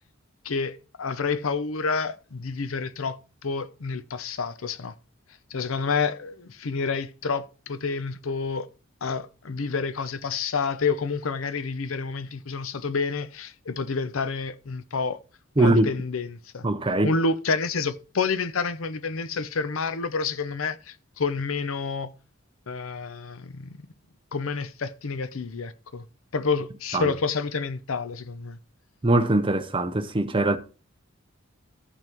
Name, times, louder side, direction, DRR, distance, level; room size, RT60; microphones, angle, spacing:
voice 1, 0.4-4.9 5.5-8.7 9.0-15.2 15.6-16.7 17.0-22.1 22.7-23.8 24.3-26.0 26.3-28.6, left 4 dB, 85° left, 0.7 m, -29 dB
voice 2, 15.6-15.9 16.6-17.1 26.9-27.1 29.0-30.6, right 2 dB, 25° right, 0.6 m, -22 dB
15.0 x 5.5 x 3.0 m
head